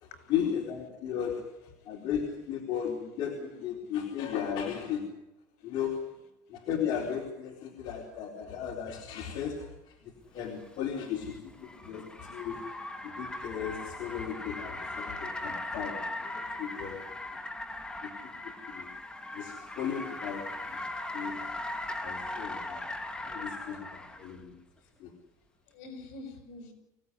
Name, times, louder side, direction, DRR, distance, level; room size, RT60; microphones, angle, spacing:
voice 1, 0.0-5.1 5.6-6.0 6.5-10.0 10.3-12.6 13.0-17.0 18.0-18.1 18.4-18.9 19.3-20.9 21.1-21.5 22.0-22.9 23.2-24.5 25.0-25.1, left 8 dB, 50° left, 2 dB, 3.9 m, -35 dB
Car, 10.4-24.3, left 2 dB, 10° left, 2.9 m, -39 dB
voice 2, 25.6-26.7, left 2 dB, 70° left, 7 dB, 6.8 m, -48 dB
24.5 x 17.5 x 9.8 m, 0.90 s
supercardioid pair, 125°, 9 cm